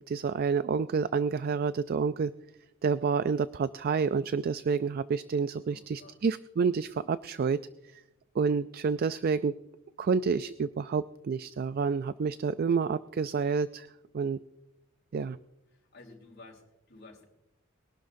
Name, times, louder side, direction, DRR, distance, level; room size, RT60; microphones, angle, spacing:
voice 1, 0.1-2.3 2.8-7.6 8.4-9.6 10.0-13.9 14.1-14.4 15.1-15.4, right 5 dB, 45° right, 14 dB, 0.3 m, -29 dB
voice 2, 5.7-6.2 15.7-17.2, left 3 dB, 50° left, -3 dB, 3.9 m, -53 dB
22.5 x 12.0 x 2.6 m, 0.88 s
head